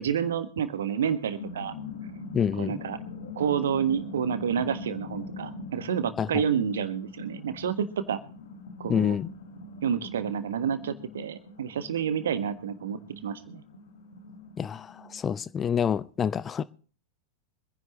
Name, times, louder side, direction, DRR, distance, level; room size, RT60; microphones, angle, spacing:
voice 1, 0.0-1.7 2.6-3.0 3.4-8.2 8.8-9.2 9.8-13.6, right 8 dB, 65° right, 1.5 m, -29 dB
sound 1, 0.9-15.2, left 3 dB, 60° left, 2.0 m, -42 dB
voice 2, 2.3-2.8 6.2-6.3 8.9-9.3 14.6-16.6, left 7 dB, 20° left, 0.6 m, -27 dB
25.5 x 10.5 x 3.1 m
figure-of-eight pair, 90°, 0 cm